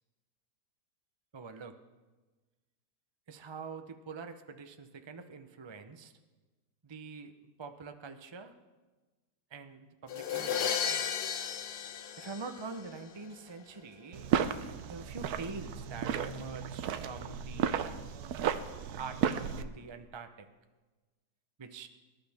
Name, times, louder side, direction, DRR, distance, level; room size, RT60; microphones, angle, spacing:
voice 1, 1.3-1.8 3.3-6.1 6.8-7.3 7.6-8.5 9.5-11.1 12.2-14.3 14.8-17.9 19.0-20.5 21.6-21.9, right 4 dB, 40° right, 7 dB, 0.4 m, -45 dB
sound 1, 10.1-13.0, left 8 dB, 75° left, 1.3 m, -34 dB
sound 2, 14.1-19.6, right 8 dB, 70° right, 1.1 m, -34 dB
24.0 x 12.0 x 3.5 m, 1.3 s
omnidirectional pair, 1.8 m